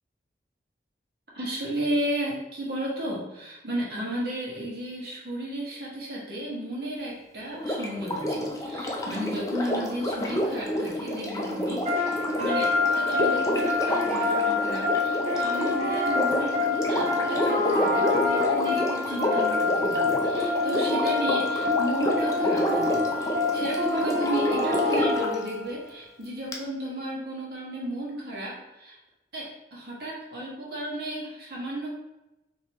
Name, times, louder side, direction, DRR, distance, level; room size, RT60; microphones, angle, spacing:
voice 1, 1.3-29.0 29.3-31.9, right 1 dB, 65° right, -5 dB, 1.4 m, -34 dB
Sink (filling or washing), 7.5-25.3 26.5-26.6, left 1 dB, 20° left, 0.4 m, -29 dB
sound 1, 11.9-25.7, left 3 dB, 35° right, 0.9 m, -26 dB
4.6 x 3.0 x 3.0 m, 0.96 s
head